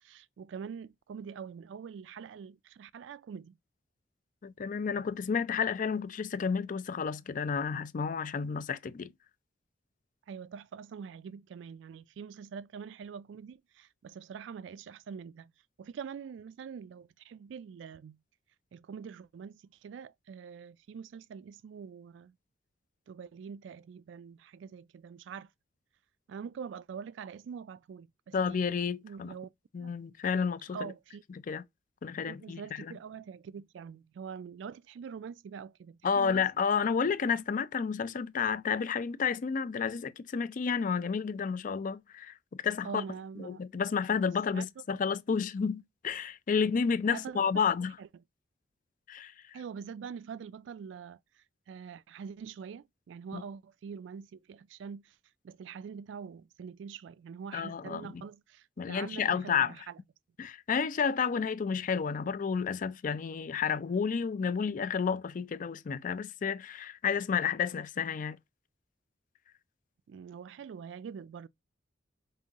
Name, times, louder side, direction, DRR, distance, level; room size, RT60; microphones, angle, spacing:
voice 1, 0.0-3.6 10.3-15.5 15.8-18.2 18.7-22.3 23.1-25.5 26.3-28.7 29.0-29.5 29.8-29.9 30.7-31.2 32.2-36.4 42.8-43.6 44.5-44.7 47.1-47.4 48.0-48.1 49.5-55.2 55.4-60.0 70.1-71.5, right 6 dB, 75° right, 0.3 m, -44 dB
voice 2, 4.4-9.1 28.3-29.4 29.7-30.8 31.5-31.6 32.0-32.9 36.0-43.0 43.4-48.0 49.1-49.3 53.3-53.4 57.5-58.2 58.8-59.7 60.4-68.4, left 6 dB, 45° left, 0.4 m, -31 dB
5.3 x 2.6 x 2.4 m
head